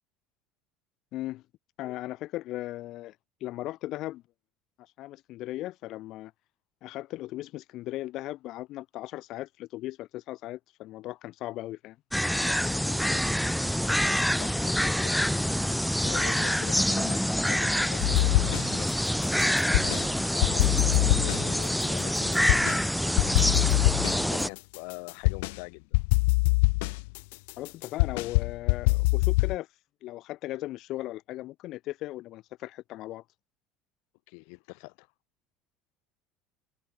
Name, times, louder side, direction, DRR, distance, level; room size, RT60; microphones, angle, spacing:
voice 1, 1.1-1.4 1.8-3.1 3.4-4.2 4.8-6.3 6.8-12.0 27.6-29.7 30.0-33.2, left 16 dB, 45° left, 3.4 m, -37 dB
sound 1, 12.1-24.5, equal, ahead, 1.2 m, -26 dB
voice 2, 12.5-13.6 14.3-15.2 15.6-18.9 19.2-23.3 24.1-26.0 34.3-35.1, left 40 dB or more, 70° left, 6.4 m, -43 dB
sound 2, 18.0-18.9 19.2-20.1 20.4-22.8 23.2-25.6 25.9-29.6, left 27 dB, 85° left, 0.4 m, -24 dB
cardioid pair, 170°, 0 cm